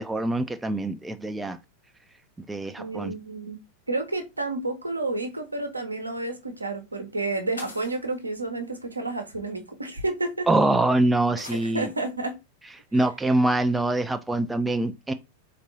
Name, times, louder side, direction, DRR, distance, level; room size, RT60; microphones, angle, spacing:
voice 1, 0.0-1.6 2.5-3.1 10.5-11.9 12.9-15.1, right 2 dB, 10° right, 0.3 m, -24 dB
voice 2, 2.8-3.6 3.9-10.5 11.6-12.4, right 2 dB, 80° right, 0.8 m, -30 dB
sound 1, 6.1-6.3 7.6-8.2 9.4-9.5 10.2-10.3 11.4-11.7, left 2 dB, 80° left, 1.4 m, -42 dB
4.3 x 2.9 x 2.8 m
figure-of-eight pair, 90°, 0 cm